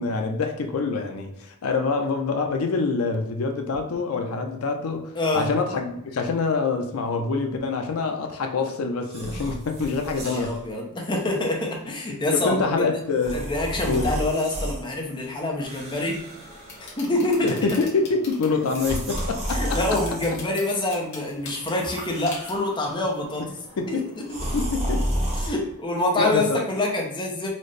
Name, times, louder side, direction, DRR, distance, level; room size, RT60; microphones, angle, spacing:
voice 1, 0.0-10.5 12.3-13.4 13.9-14.1 17.4-19.8 23.8-24.1 24.5-25.0 26.2-26.6, left 4 dB, 75° left, 4 dB, 0.5 m, -25 dB
voice 2, 5.1-5.5 10.1-12.9 13.3-16.2 16.8-17.8 19.5-23.4 23.9-24.2 25.4-27.5, left 2 dB, 20° left, 0 dB, 0.5 m, -26 dB
sound 1, 9.0-10.6 11.3-11.5 13.1-14.8 15.6-17.0 17.3-17.7 18.5-20.8 21.5-22.9 24.3-25.5, equal, 30° right, 0.8 m, -31 dB
sound 2, 16.0-24.6, left 3 dB, 50° left, 1.0 m, -44 dB
4.0 x 2.0 x 3.2 m, 0.80 s
head